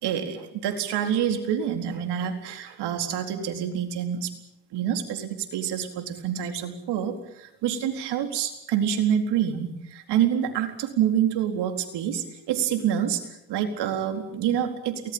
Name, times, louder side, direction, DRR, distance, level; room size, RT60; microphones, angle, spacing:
voice 1, 0.0-4.3 4.7-13.2 13.5-15.1, right 9 dB, 75° right, 6 dB, 4.2 m, -27 dB
23.5 x 19.5 x 8.9 m, 0.83 s
supercardioid pair, 70°, 41 cm